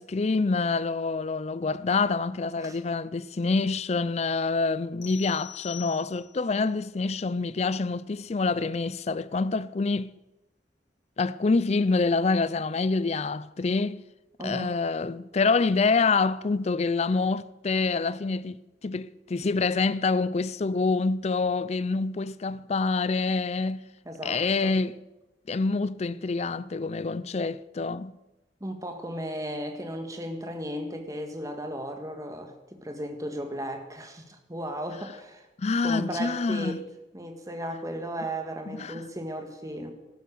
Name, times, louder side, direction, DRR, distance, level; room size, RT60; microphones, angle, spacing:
voice 1, 0.0-10.1 11.2-14.0 14.4-23.8 24.2-25.0 25.5-28.2 35.6-36.8 38.7-39.0, left 4 dB, 35° left, 0.4 m, -26 dB
sound 1, 5.0-6.5, left 15 dB, 75° left, 2.3 m, -43 dB
voice 2, 14.4-14.7 24.0-24.7 28.6-35.5 35.8-36.8 37.1-39.9, right 1 dB, 20° right, 1.7 m, -35 dB
14.0 x 12.0 x 6.8 m
head